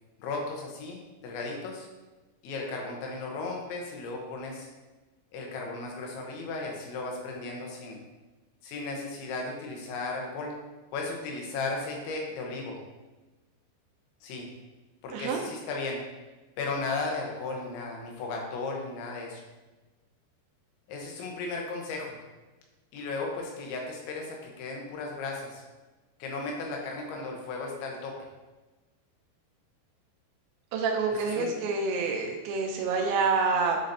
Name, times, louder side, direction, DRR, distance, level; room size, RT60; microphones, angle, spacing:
voice 1, 0.2-1.9 2.4-4.7 5.3-8.0 8.6-10.6 10.9-12.8 14.2-14.5 15.0-16.0 16.6-19.4 20.9-22.2 22.9-25.6 26.2-28.2 31.2-31.5, left 3 dB, 85° left, 0 dB, 3.4 m, -35 dB
voice 2, 15.1-15.4 30.7-33.8, right 4 dB, 85° right, 1 dB, 2.9 m, -27 dB
9.9 x 4.0 x 2.7 m, 1.2 s
omnidirectional pair, 5.1 m